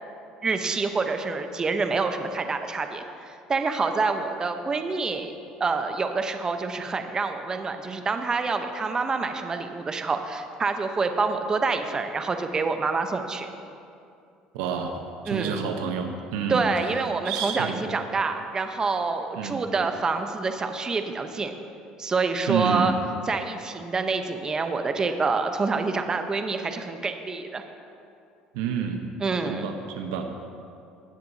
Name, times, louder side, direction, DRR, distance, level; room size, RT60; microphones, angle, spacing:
voice 1, 0.4-5.3 5.6-13.5 15.3-15.7 16.5-21.5 22.0-22.9 23.3-27.6 29.2-29.6, right 4 dB, 30° right, 7 dB, 0.8 m, -27 dB
voice 2, 14.5-16.9 17.2-17.8 19.4-19.6 22.5-22.9 28.5-29.0 29.4-30.5, right 7 dB, 90° right, 4 dB, 0.9 m, -29 dB
17.5 x 7.6 x 2.8 m, 2.5 s
supercardioid pair, 90°, 3 cm